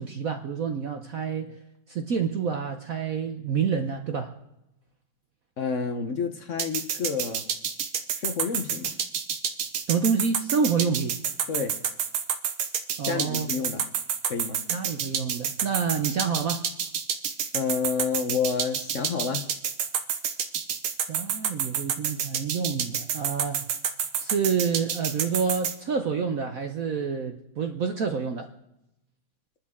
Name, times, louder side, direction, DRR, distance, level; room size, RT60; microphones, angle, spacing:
voice 1, 0.0-1.6 1.9-4.3 9.9-11.2 13.0-13.5 14.7-16.6 21.1-23.6 24.2-28.5, right 6 dB, 60° right, 6 dB, 0.9 m, -28 dB
voice 2, 5.6-7.4 8.1-9.0 11.5-11.8 13.0-13.8 14.2-14.6 17.5-19.4, left 5 dB, 55° left, 7 dB, 0.8 m, -29 dB
sound 1, 6.6-25.7, right 8 dB, 85° right, 2.0 m, -28 dB
27.5 x 11.5 x 3.7 m, 0.91 s
omnidirectional pair, 2.4 m